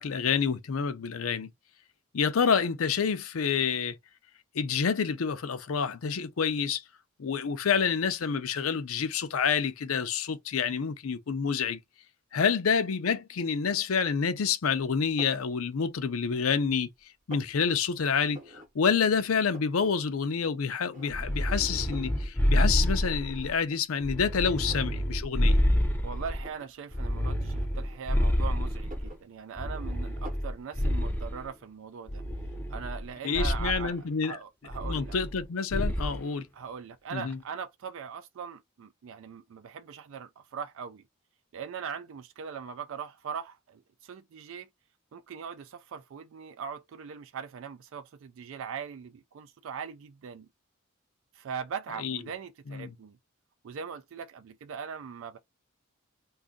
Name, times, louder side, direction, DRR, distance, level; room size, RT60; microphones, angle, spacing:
voice 1, 0.0-1.5 2.1-4.0 4.5-6.8 7.2-11.8 12.3-16.9 17.3-25.6 33.2-34.4 34.8-36.5 37.1-37.4 52.0-52.2 52.7-52.9, left 6 dB, 80° left, 0.5 m, -28 dB
sound 1, 15.2-15.5 16.0-16.7 17.0-17.6 18.3-18.7 19.0-19.1 19.3-20.0 20.3-20.4 20.9-21.4 21.9-22.2 23.0-23.1 23.6-25.0 25.4-25.6 26.4-26.8 27.7-28.4 28.7-29.8 30.3-30.6, right 1 dB, 35° right, 0.9 m, -48 dB
sound 2, 21.1-23.5 24.0-26.5 26.9-29.1 29.6-31.4 32.1-33.0 33.3-33.8 34.7-35.4 35.7-36.2, equal, 10° left, 0.4 m, -28 dB
voice 2, 26.0-32.2 32.7-34.0 34.2-35.2 36.5-41.0 41.5-44.7 45.1-50.5 51.3-53.2 53.6-55.4, right 6 dB, 65° right, 0.3 m, -40 dB
2.6 x 2.4 x 3.6 m
head